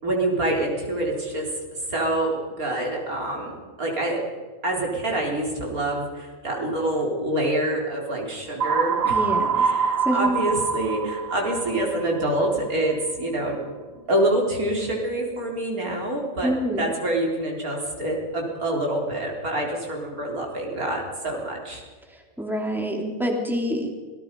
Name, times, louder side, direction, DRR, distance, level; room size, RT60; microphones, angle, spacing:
voice 1, 0.0-3.5 3.8-4.2 4.6-9.2 9.5-13.6 14.1-21.8, right 1 dB, 85° right, -1 dB, 4.5 m, -26 dB
sound 1, 8.6-12.5, right 6 dB, 50° right, 1.0 m, -25 dB
voice 2, 9.1-9.7 10.0-10.4 16.4-16.9 22.1-23.9, equal, ahead, 0 dB, 3.1 m, -26 dB
25.5 x 19.0 x 5.4 m, 1.5 s
omnidirectional pair, 1.5 m